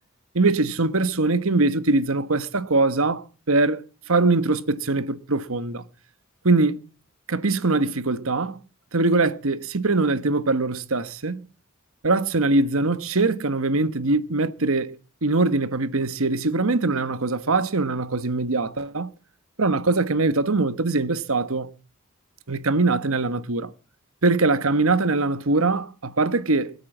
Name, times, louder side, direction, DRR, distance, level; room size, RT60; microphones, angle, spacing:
voice 1, 0.3-3.8 4.1-5.8 6.4-6.8 7.3-8.6 8.9-11.5 12.0-15.0 15.2-19.1 19.6-21.7 22.5-23.7 24.2-26.7, right 3 dB, 70° right, 1.2 m, -22 dB
23.0 x 8.6 x 7.2 m
head